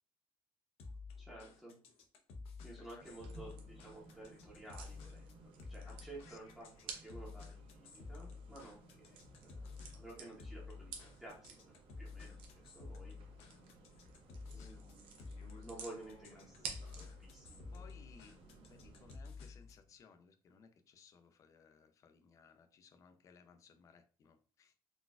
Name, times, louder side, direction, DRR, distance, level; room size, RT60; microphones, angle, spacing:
sound 1, 0.8-19.9, left 4 dB, 85° left, 0.7 m, -52 dB
voice 1, 1.2-1.7 2.6-13.2 14.5-17.8, right 2 dB, 5° right, 0.7 m, -54 dB
voice 2, 2.8-3.3 6.3-6.4 14.5-15.3 17.1-17.2 17.7-24.7, left 5 dB, 35° left, 0.3 m, -63 dB
sound 2, 3.0-19.2, right 5 dB, 65° right, 0.6 m, -54 dB
4.0 x 2.2 x 2.3 m
cardioid pair, 165°, 10 cm